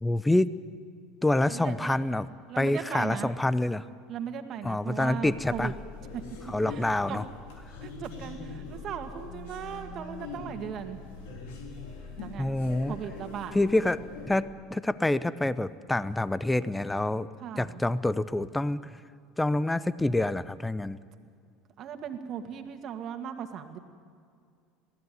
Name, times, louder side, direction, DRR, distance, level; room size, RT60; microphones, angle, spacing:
voice 1, 0.0-0.5 1.2-2.3 2.6-3.9 4.6-5.7 6.5-7.2 12.4-12.9 13.5-17.3 17.6-18.9 19.4-21.0, left 2 dB, 10° left, 17 dB, 0.7 m, -27 dB
voice 2, 1.5-2.0 2.5-3.3 4.1-5.7 6.1-6.2 6.7-7.2 7.8-11.0 12.2-12.5 12.9-13.6 17.4-17.8 21.8-23.8, right 8 dB, 50° right, 7 dB, 2.0 m, -38 dB
sound 1, 5.2-14.4, left 3 dB, 75° left, 3.5 m, -42 dB
22.0 x 15.5 x 9.5 m, 2.2 s
hypercardioid pair, 85°, 0 cm